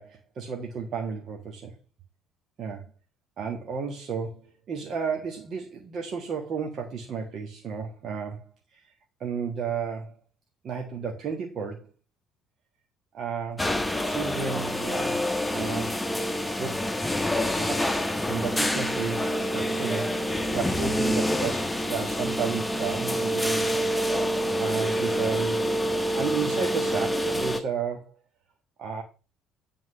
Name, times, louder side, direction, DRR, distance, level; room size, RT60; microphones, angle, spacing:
voice 1, 0.0-1.7 2.6-2.9 3.4-8.9 9.2-10.1 10.6-11.9 13.1-13.7 14.0-15.2 15.5-15.9 16.2-16.9 17.4-23.8 24.6-25.6 26.1-28.1 28.8-29.0, right 6 dB, 50° right, 1.4 m, -33 dB
sound 1, 13.6-27.6, equal, 10° left, 1.1 m, -27 dB
9.4 x 3.8 x 6.0 m
figure-of-eight pair, 50°, 0 cm